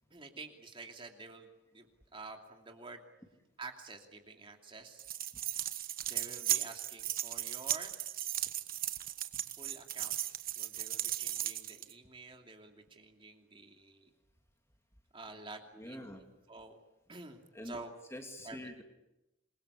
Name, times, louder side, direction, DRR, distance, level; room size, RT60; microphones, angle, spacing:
voice 1, 0.1-3.0 3.6-5.0 6.1-8.0 9.6-10.2 10.6-14.1 15.1-16.0 16.5-16.8 17.1-17.9 18.4-18.6, right 3 dB, 25° right, 3 dB, 2.7 m, -49 dB
sound 1, 5.0-11.9, right 12 dB, 50° right, 1.3 m, -36 dB
voice 2, 15.7-16.2 17.5-17.8 18.1-18.8, left 1 dB, 15° left, 4 dB, 2.9 m, -45 dB
27.5 x 22.5 x 8.4 m, 0.93 s
head